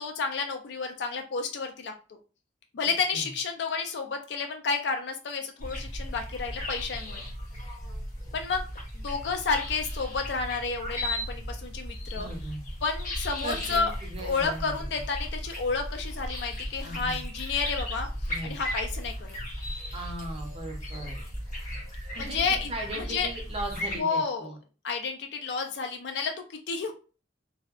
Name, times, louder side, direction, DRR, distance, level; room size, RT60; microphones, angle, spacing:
voice 1, 0.0-1.9 2.7-7.2 8.3-8.6 9.0-12.3 12.8-13.9 14.2-19.4 22.2-22.7 23.0-23.3 24.0-24.5 24.8-26.9, left 4 dB, 75° left, 5 dB, 0.4 m, -31 dB
sound 1, 5.6-24.0, equal, 45° left, 0.8 m, -36 dB
voice 2, 12.1-12.7 13.4-14.9 16.8-17.2 18.3-18.5 19.9-21.2 22.1-22.4 22.7-24.6, right 1 dB, 35° right, 2 dB, 0.5 m, -38 dB
2.6 x 2.0 x 2.3 m, 0.35 s
head